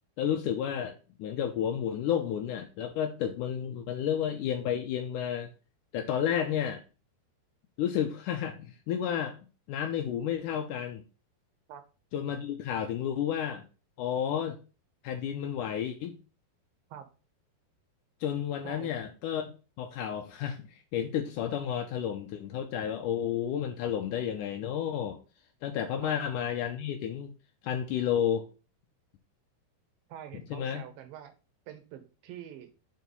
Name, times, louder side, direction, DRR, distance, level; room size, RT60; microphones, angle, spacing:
voice 1, 0.2-5.5 5.9-6.8 7.8-9.4 9.7-11.0 12.1-13.6 14.0-14.6 15.0-16.1 18.2-25.2 25.6-27.3 27.6-28.4 30.5-30.8, left 9 dB, 90° left, 4 dB, 1.8 m, -31 dB
voice 2, 30.1-31.3 31.7-32.7, right 10 dB, 70° right, 8 dB, 2.6 m, -45 dB
6.6 x 4.7 x 5.3 m, 0.33 s
omnidirectional pair, 4.7 m